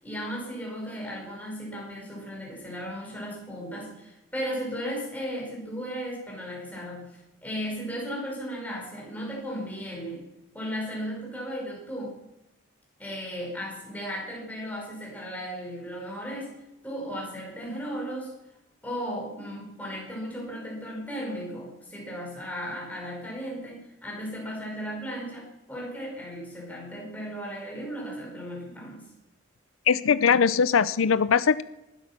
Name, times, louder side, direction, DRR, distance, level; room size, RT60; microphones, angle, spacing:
voice 1, 0.0-10.2 10.5-12.2 13.0-16.6 16.8-18.3 18.8-29.0, equal, 10° left, -3 dB, 5.1 m, -35 dB
voice 2, 29.9-31.6, left 6 dB, 85° left, 16 dB, 0.5 m, -21 dB
19.0 x 12.5 x 6.0 m, 0.98 s
head